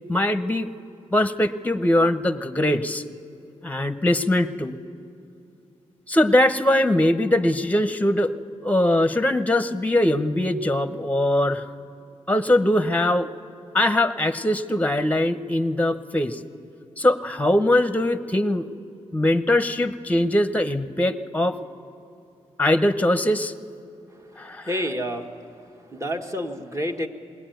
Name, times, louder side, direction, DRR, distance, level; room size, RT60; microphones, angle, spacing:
voice 1, 0.1-0.7 1.1-3.0 3.6-4.8 6.1-8.3 8.6-11.7 12.3-13.3 13.7-16.4 17.0-18.7 19.1-21.6 22.6-23.5 24.4-24.7, left 1 dB, 10° left, 10 dB, 1.0 m, -21 dB
voice 2, 24.6-25.3 25.9-27.1, equal, 25° right, 3 dB, 1.8 m, -28 dB
21.5 x 18.5 x 9.3 m, 2.6 s
cardioid pair, 60°, 12 cm